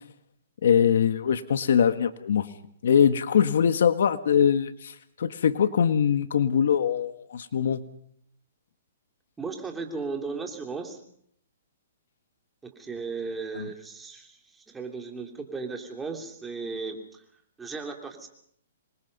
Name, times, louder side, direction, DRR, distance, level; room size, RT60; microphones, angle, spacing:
voice 1, 0.6-2.5 2.8-7.8 13.6-13.7, left 8 dB, 70° left, 11 dB, 1.6 m, -22 dB
voice 2, 9.4-11.0 12.6-17.2 17.6-18.3, right 4 dB, 10° right, 3 dB, 3.2 m, -36 dB
27.0 x 22.5 x 5.5 m, 0.66 s
hypercardioid pair, 155°, 0 cm